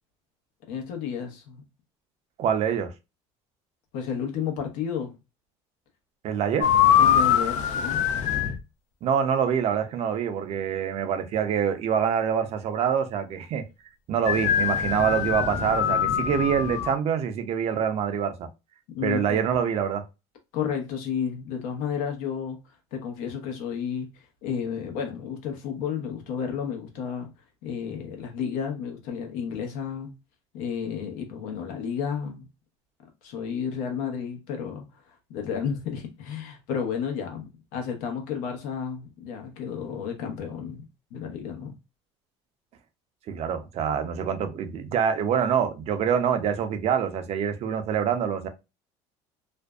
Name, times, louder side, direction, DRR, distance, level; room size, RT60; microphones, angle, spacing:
voice 1, 0.7-1.6 3.9-5.1 7.0-8.0 18.9-19.4 20.5-22.6 22.9-27.3 27.6-30.1 30.5-32.4 33.2-40.8 41.1-41.7, left 7 dB, 80° left, 0.8 m, -32 dB
voice 2, 2.4-2.9 6.2-6.7 9.0-13.6 14.1-18.5 19.0-20.0 43.3-48.5, right 8 dB, 50° right, 0.5 m, -25 dB
sound 1, 6.6-8.6 14.2-16.9, left 9 dB, 65° left, 0.4 m, -23 dB
2.5 x 2.2 x 2.3 m
supercardioid pair, 100°, 13 cm